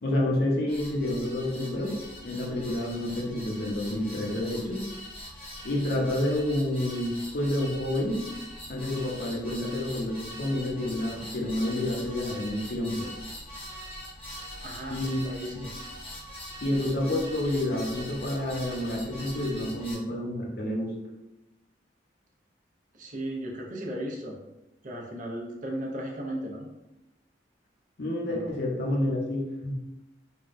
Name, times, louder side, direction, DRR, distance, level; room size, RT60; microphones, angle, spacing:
voice 1, 0.0-2.0 2.2-4.8 5.6-8.2 8.7-13.1 14.9-15.6 16.6-20.9 28.0-29.8, left 1 dB, 60° left, -1 dB, 0.7 m, -29 dB
sound 1, 0.7-20.0, equal, 30° left, 0.8 m, -42 dB
voice 2, 14.6-15.7 22.9-24.4 24.8-26.7 28.3-28.5, right 1 dB, 45° right, -1 dB, 0.6 m, -36 dB
3.4 x 2.2 x 2.5 m, 0.98 s
head